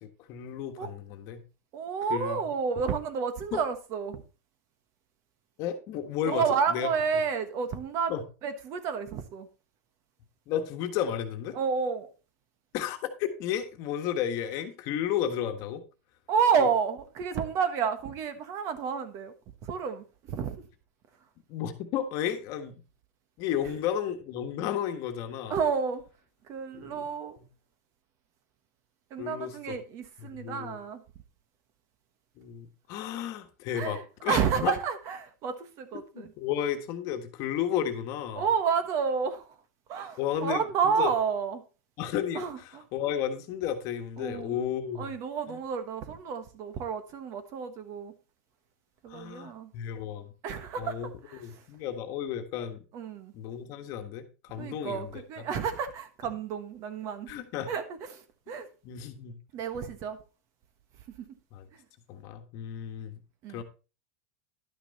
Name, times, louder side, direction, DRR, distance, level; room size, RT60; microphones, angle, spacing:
voice 1, 0.0-1.4 2.1-2.4 3.5-3.6 5.6-6.4 6.7-6.9 8.1-8.2 10.5-11.6 12.7-15.8 21.5-22.8 23.4-25.6 26.7-27.1 27.4-27.5 29.2-29.6 30.2-30.8 32.4-34.7 35.9-38.5 40.2-41.1 42.0-45.1 45.5-45.6 49.1-52.8 53.3-55.5 57.3-57.7 58.8-59.3 61.5-61.7 62.1-63.2 63.5-63.6, left 9 dB, 45° left, 1.4 m, -33 dB
voice 2, 1.7-4.2 6.3-8.1 8.4-9.5 11.5-12.1 16.3-19.3 19.6-20.6 25.5-26.0 26.5-27.4 29.1-31.0 33.7-36.3 38.4-39.5 39.9-41.6 42.3-42.8 44.2-44.6 45.0-48.1 49.0-49.7 50.4-51.6 52.9-53.3 54.6-57.3 57.7-57.8 58.1-58.7 59.5-60.2 61.2-61.3 63.4-63.6, right 6 dB, 40° right, 1.3 m, -30 dB
11.5 x 6.1 x 4.1 m
supercardioid pair, 145°, 8 cm